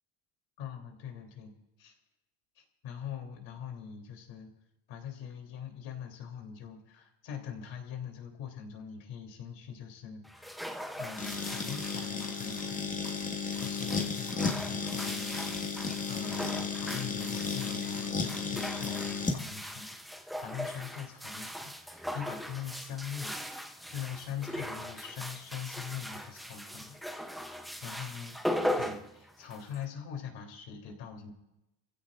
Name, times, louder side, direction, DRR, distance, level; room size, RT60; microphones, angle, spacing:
voice 1, 0.6-1.9 2.5-4.5 4.9-10.6 10.9-12.9 13.5-15.4 16.0-27.0 27.8-28.4 28.7-31.3, left 8 dB, 65° left, 3 dB, 3.4 m, -43 dB
sound 1, 10.2-29.8, equal, ahead, 0.7 m, -39 dB
sound 2, 11.2-19.4, left 5 dB, 15° left, 1.7 m, -34 dB
28.0 x 16.0 x 2.5 m, 0.92 s
cardioid pair, 125°, 49 cm